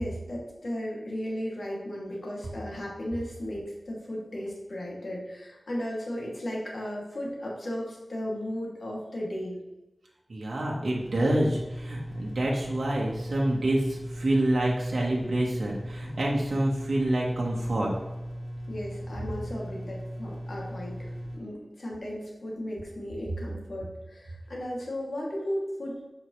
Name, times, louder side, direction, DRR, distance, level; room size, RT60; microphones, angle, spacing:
voice 1, 0.0-9.6 18.7-26.0, equal, 70° left, -3 dB, 2.4 m, -35 dB
voice 2, 10.3-17.9, right 1 dB, 75° right, -3 dB, 1.3 m, -27 dB
sound 1, 11.0-21.4, equal, 5° right, 1.9 m, -38 dB
8.3 x 5.7 x 3.2 m, 1.0 s
wide cardioid pair, 65°, 0 cm